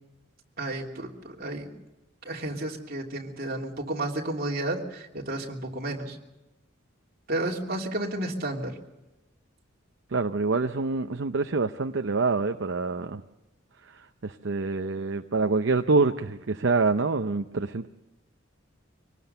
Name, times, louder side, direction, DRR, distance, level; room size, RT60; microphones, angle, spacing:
voice 1, 0.6-1.7 2.2-6.2 7.3-8.8, right 1 dB, 50° right, 0 dB, 2.9 m, -32 dB
voice 2, 10.1-13.2 13.9-17.9, right 3 dB, 65° right, 7 dB, 0.7 m, -26 dB
24.5 x 19.0 x 6.8 m, 1.0 s
head